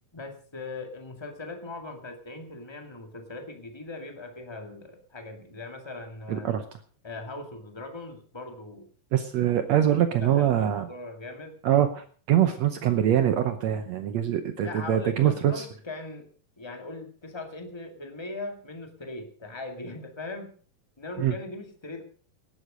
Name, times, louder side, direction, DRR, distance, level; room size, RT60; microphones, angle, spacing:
voice 1, 0.1-6.5 7.0-8.9 10.2-11.5 14.6-16.3 16.6-20.5 21.0-22.0, left 2 dB, 15° left, 5 dB, 1.2 m, -39 dB
voice 2, 6.3-6.6 9.1-10.9 11.6-15.6 21.2-21.3, right 10 dB, 70° right, 9 dB, 1.7 m, -24 dB
18.0 x 9.8 x 5.1 m, 0.42 s
omnidirectional pair, 4.0 m